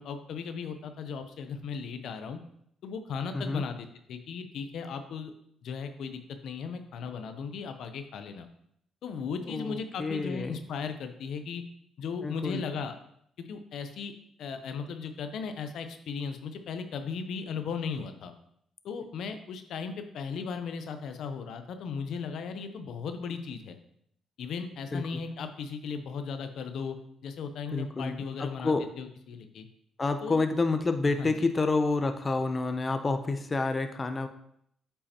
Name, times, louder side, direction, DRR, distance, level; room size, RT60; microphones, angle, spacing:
voice 1, 0.0-2.4 2.8-5.3 5.6-8.5 9.0-11.6 12.0-13.0 13.5-14.1 14.4-18.3 18.8-23.8 24.4-27.0 27.2-29.7 30.2-30.4 31.0-31.5, left 5 dB, 75° left, 8 dB, 0.6 m, -37 dB
voice 2, 3.3-3.6 9.5-10.6 12.2-12.6 24.9-25.2 27.7-28.9 30.0-34.3, left 3 dB, 30° left, 8 dB, 0.6 m, -29 dB
8.5 x 5.5 x 2.9 m, 0.70 s
cardioid pair, 90°, 0 cm